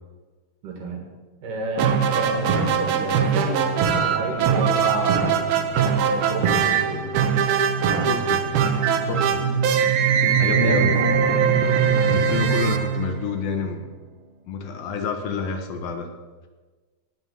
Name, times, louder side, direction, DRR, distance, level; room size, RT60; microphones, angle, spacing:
voice 1, 0.6-1.0 1.4-5.6 6.0-7.1 10.5-10.8, right 2 dB, 55° right, 3 dB, 3.3 m, -30 dB
sound 1, 1.8-13.6, right 7 dB, 75° right, 2.8 m, -21 dB
voice 2, 8.0-8.5 9.1-9.5 10.4-11.0 12.1-13.8 14.5-16.1, left 6 dB, 70° left, 5 dB, 2.6 m, -28 dB
18.5 x 6.2 x 8.2 m, 1.3 s
omnidirectional pair, 4.6 m